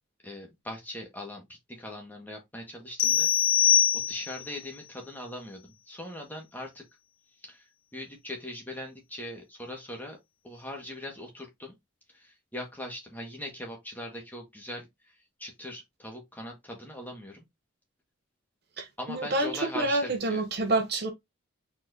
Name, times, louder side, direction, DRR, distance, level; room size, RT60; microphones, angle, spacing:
voice 1, 0.2-6.8 7.4-10.2 10.4-11.7 12.1-17.4 19.0-20.4, left 1 dB, 10° left, 1.6 m, -41 dB
sound 1, 3.0-4.5, left 9 dB, 70° left, 0.9 m, -23 dB
voice 2, 18.8-21.1, right 2 dB, 50° right, 0.8 m, -28 dB
4.4 x 4.3 x 2.7 m
head